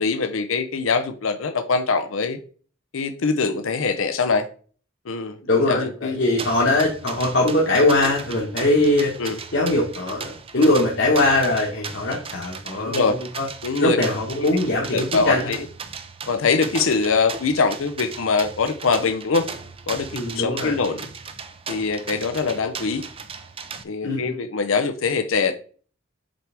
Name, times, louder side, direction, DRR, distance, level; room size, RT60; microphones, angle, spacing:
voice 1, 0.0-2.4 2.9-4.5 5.1-5.4 5.7-6.2 9.2-9.4 12.8-13.2 13.6-14.0 14.9-15.7 16.3-19.5 19.9-20.1 20.3-21.0 21.7-23.0 23.8-25.5, left 4 dB, 90° left, 0.6 m, -23 dB
voice 2, 5.5-9.1 9.5-13.5 13.8-15.5 20.1-20.7 24.0-24.4, left 2 dB, 60° left, 1.3 m, -21 dB
sound 1, 6.4-23.8, right 5 dB, 30° right, 0.5 m, -36 dB
7.6 x 4.7 x 3.4 m
head